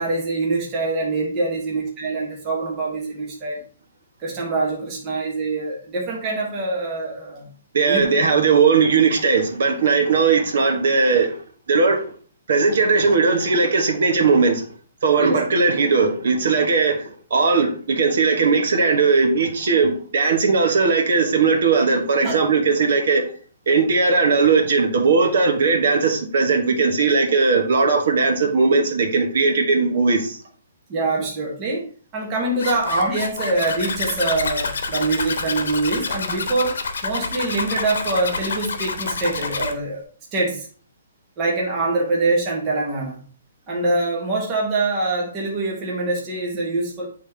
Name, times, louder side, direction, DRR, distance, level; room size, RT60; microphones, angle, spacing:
voice 1, 0.0-3.6 4.2-7.5 7.9-8.0 8.5-8.6 15.2-15.4 22.2-22.4 30.9-31.8 32.1-36.8 37.0-40.0 40.3-40.7 41.4-43.2 43.7-47.1, right 2 dB, 15° right, 1.0 m, -24 dB
voice 2, 7.7-11.4 11.7-12.0 12.5-14.6 15.0-23.3 23.7-30.4, right 4 dB, 55° right, 1.2 m, -18 dB
Zipper (clothing), 32.6-39.7, left 4 dB, 75° left, 0.9 m, -28 dB
8.4 x 3.4 x 3.4 m
hypercardioid pair, 180°, 0 cm